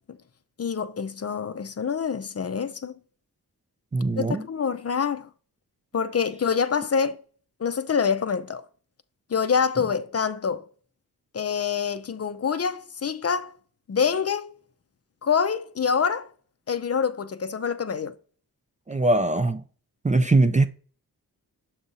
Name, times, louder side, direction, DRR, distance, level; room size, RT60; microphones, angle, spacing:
voice 1, 0.6-2.9 4.2-5.3 5.9-7.2 7.6-8.7 9.3-10.6 11.3-13.5 13.9-14.5 15.2-16.3 16.7-18.1, left 6 dB, 40° left, 0.5 m, -26 dB
voice 2, 3.9-4.4 18.9-19.6 20.0-20.7, right 2 dB, 20° right, 0.4 m, -21 dB
7.1 x 2.6 x 5.4 m
wide cardioid pair, 85°, 37 cm